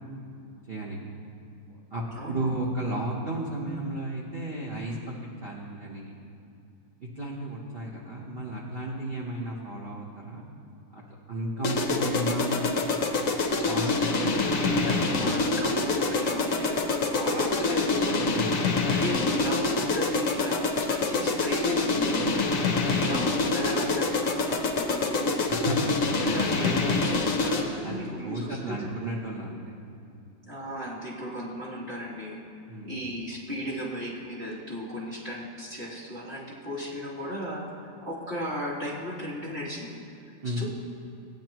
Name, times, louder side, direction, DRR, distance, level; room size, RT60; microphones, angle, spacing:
voice 1, 0.7-1.0 1.9-5.1 5.4-6.1 7.0-10.4 10.9-11.0 11.3-12.7 13.6-15.1 18.3-18.5 25.5-26.1 27.8-29.6 32.7-32.9 40.4-40.6, right 1 dB, 40° right, -3 dB, 0.8 m, -33 dB
voice 2, 2.1-2.6 14.0-18.2 18.9-22.2 22.7-25.5 26.2-28.8 30.4-32.4 32.8-39.9 40.4-40.6, equal, 25° right, -8 dB, 2.9 m, -35 dB
sound 1, 11.6-27.8, left 3 dB, 55° left, 0.9 m, -26 dB
17.0 x 10.0 x 3.0 m, 2.6 s
omnidirectional pair, 2.4 m